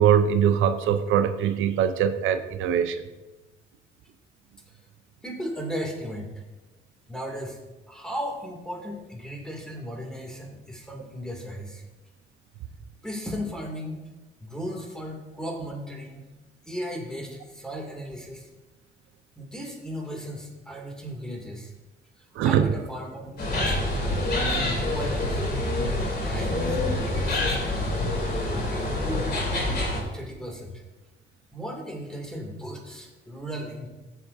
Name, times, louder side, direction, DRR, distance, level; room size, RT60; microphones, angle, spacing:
voice 1, 0.0-3.0 22.4-22.7, right 9 dB, 90° right, 9 dB, 0.6 m, -22 dB
voice 2, 5.2-6.5 7.1-7.6 7.9-11.8 13.0-14.0 14.4-16.3 16.7-18.5 19.4-21.7 22.2-23.9 24.3-25.4 26.0-28.0 28.6-30.8 31.5-33.9, equal, 5° left, 1 dB, 2.6 m, -36 dB
sound 1, 23.4-30.0, left 1 dB, 55° left, 3.6 m, -26 dB
15.0 x 7.6 x 2.7 m, 1.1 s
cardioid pair, 90°, 20 cm